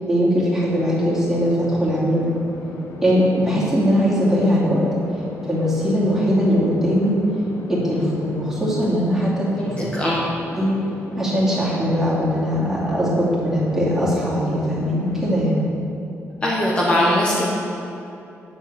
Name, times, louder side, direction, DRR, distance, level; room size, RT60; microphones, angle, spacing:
voice 1, 0.1-2.3 3.0-4.8 5.1-7.2 7.7-10.0 10.6-10.7 11.2-15.6, equal, 10° right, -8 dB, 2.8 m, -20 dB
sound 1, 0.8-15.6, left 4 dB, 80° left, 1.0 m, -38 dB
voice 2, 9.5-10.2 16.4-17.5, left 1 dB, 20° left, -6 dB, 1.3 m, -20 dB
9.5 x 7.1 x 7.1 m, 2.8 s
wide cardioid pair, 170°, 5 cm